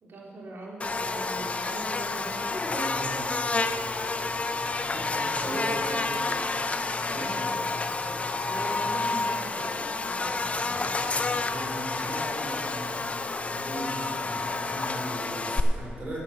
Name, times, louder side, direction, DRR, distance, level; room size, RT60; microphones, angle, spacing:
voice 1, 0.0-2.5 4.9-6.4 8.4-11.1, right 2 dB, 65° right, -3 dB, 3.1 m, -41 dB
Buzz, 0.8-15.6, left 3 dB, 35° left, 0.6 m, -29 dB
voice 2, 2.6-3.7 4.8-6.2 7.0-7.4 11.4-16.2, right 1 dB, 50° right, -4 dB, 3.6 m, -38 dB
11.5 x 9.1 x 6.5 m, 2.6 s
cardioid pair, 80°, 4 cm